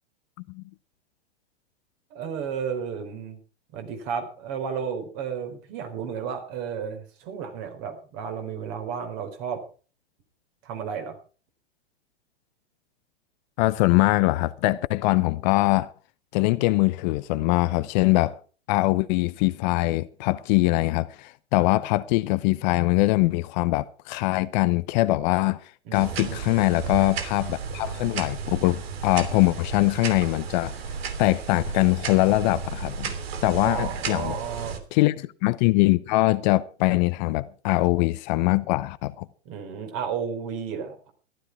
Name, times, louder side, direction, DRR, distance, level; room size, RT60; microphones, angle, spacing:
voice 1, 2.1-3.4 3.7-9.6 10.6-11.2 25.9-26.4 33.6-34.8 39.4-41.1, right 7 dB, 45° right, 4.3 m, -33 dB
voice 2, 13.6-15.9 16.3-18.4 18.7-25.6 25.9-30.8 31.2-33.1 33.4-34.4 34.9-39.3, left 20 dB, 45° left, 0.7 m, -22 dB
sound 1, 25.9-34.8, right 6 dB, 65° right, 3.0 m, -33 dB
14.5 x 12.5 x 4.7 m
hypercardioid pair, 110°, 33 cm